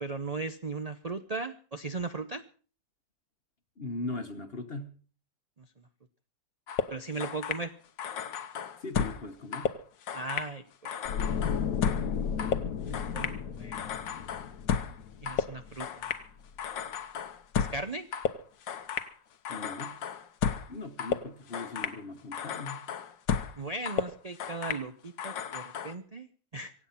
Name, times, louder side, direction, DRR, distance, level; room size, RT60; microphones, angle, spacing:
voice 1, 0.0-2.4 5.6-5.7 6.9-7.7 10.1-11.0 12.8-13.8 15.2-16.1 17.5-18.1 23.6-26.7, right 3 dB, 40° right, 0.5 m, -37 dB
voice 2, 3.8-5.0 8.8-9.7 19.5-19.9 20.7-22.8, left 2 dB, 35° left, 1.2 m, -39 dB
sound 1, 6.7-7.7 8.0-9.3 9.5-10.5 10.9-13.4 13.7-15.0 15.3-16.3 16.6-17.9 18.1-19.1 19.5-20.7 21.0-22.0 22.3-23.6 23.9-24.9 25.2-26.0, left 7 dB, 85° left, 1.8 m, -33 dB
sound 2, 11.0-16.1 16.4-16.7, left 7 dB, 60° left, 1.3 m, -34 dB
25.0 x 8.5 x 5.7 m
omnidirectional pair, 1.9 m